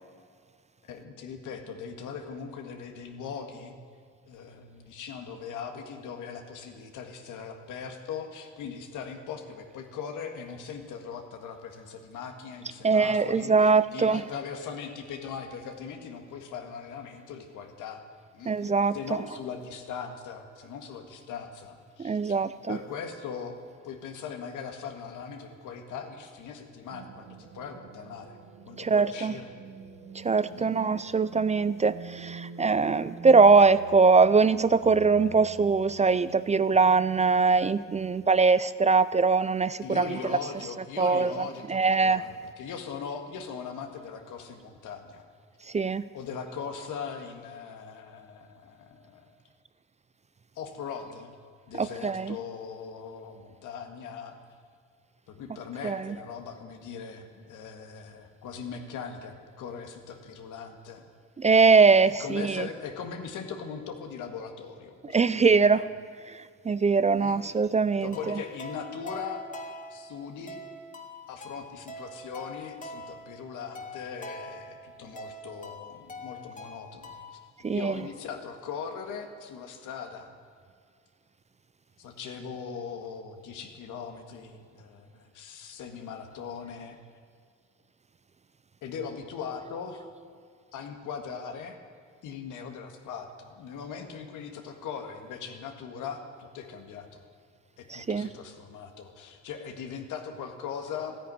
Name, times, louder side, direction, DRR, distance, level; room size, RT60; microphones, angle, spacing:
voice 1, 0.8-3.8 4.3-13.5 13.9-18.0 18.3-18.5 18.9-22.4 22.7-23.6 23.8-28.4 28.7-29.5 30.5-30.7 39.8-42.3 42.6-45.2 46.1-49.4 50.6-51.3 51.7-54.3 55.3-61.1 62.2-65.6 67.2-67.5 68.0-69.4 69.9-70.6 71.3-77.4 77.7-80.3 82.0-87.0 88.8-90.1 90.7-91.8 92.2-97.2 97.8-101.2, left 6 dB, 85° left, 5 dB, 1.8 m, -40 dB
voice 2, 12.8-14.2 18.5-19.0 22.0-22.8 28.8-29.4 30.1-40.4 41.0-42.2 45.6-46.1 51.7-52.4 55.8-56.2 61.4-62.7 65.0-65.9 66.3-68.4 77.6-78.0 97.9-98.3, right 4 dB, 25° right, 16 dB, 0.4 m, -22 dB
sound 1, 26.9-38.3, right 6 dB, 80° right, 1.2 m, -46 dB
sound 2, 68.1-77.5, left 1 dB, 25° left, 2.0 m, -44 dB
13.5 x 10.0 x 9.9 m, 2.1 s
cardioid pair, 90°, 30 cm